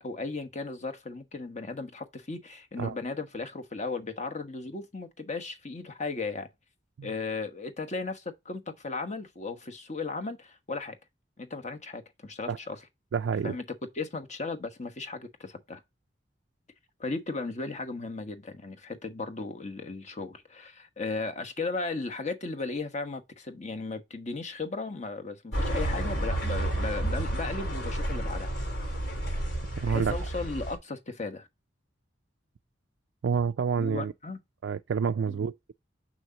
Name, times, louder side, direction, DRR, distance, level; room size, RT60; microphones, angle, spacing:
voice 1, 0.0-6.5 7.0-11.0 11.4-12.8 13.4-13.6 13.9-15.8 17.0-28.5 29.8-31.5 33.8-34.4 35.3-35.4, left 3 dB, 40° left, 1.2 m, -36 dB
voice 2, 13.1-13.5 29.8-30.2 33.2-34.1 34.6-35.7, right 6 dB, 85° right, 0.4 m, -28 dB
sound 1, 25.5-30.7, right 1 dB, 70° left, 3.8 m, -31 dB
6.3 x 6.3 x 2.8 m
head